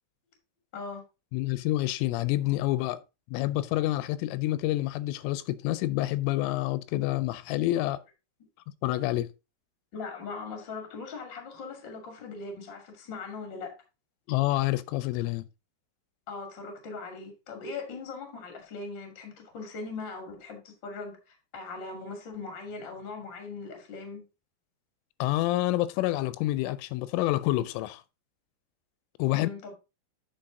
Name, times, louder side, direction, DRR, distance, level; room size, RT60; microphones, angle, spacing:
voice 1, 0.7-1.0 9.9-13.8 16.3-24.2 29.3-29.7, left 4 dB, 35° left, 1.9 m, -40 dB
voice 2, 1.3-3.0 3.3-8.0 8.8-9.3 14.3-15.4 25.2-28.0 29.2-29.5, left 16 dB, 90° left, 3.2 m, -28 dB
8.7 x 6.0 x 3.8 m
omnidirectional pair, 5.6 m